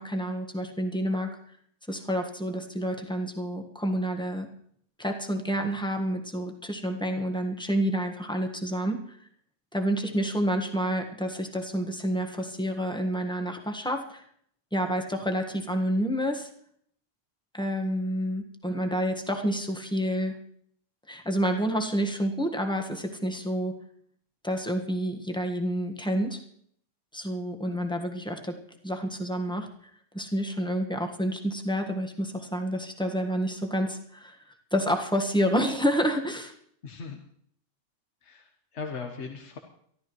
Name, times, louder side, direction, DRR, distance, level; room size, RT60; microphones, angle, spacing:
voice 1, 0.0-1.4 1.9-4.5 5.0-9.2 9.7-14.2 14.7-16.5 17.5-20.4 21.1-23.8 24.4-26.4 27.1-28.6 28.8-29.7 30.1-36.5, equal, 5° left, 3 dB, 1.5 m, -29 dB
voice 2, 36.8-37.2 38.2-39.6, left 5 dB, 70° left, 3 dB, 1.6 m, -38 dB
23.5 x 13.5 x 3.2 m, 0.64 s
omnidirectional pair, 1.2 m